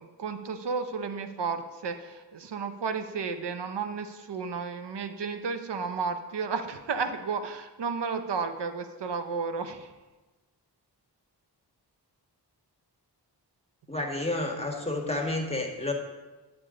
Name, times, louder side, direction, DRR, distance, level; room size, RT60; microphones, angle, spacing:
voice 1, 0.0-9.9, right 5 dB, 75° right, 8 dB, 0.7 m, -33 dB
voice 2, 13.9-15.9, left 2 dB, 15° left, 1 dB, 1.4 m, -30 dB
9.6 x 6.9 x 3.7 m, 1.2 s
wide cardioid pair, 70°, 42 cm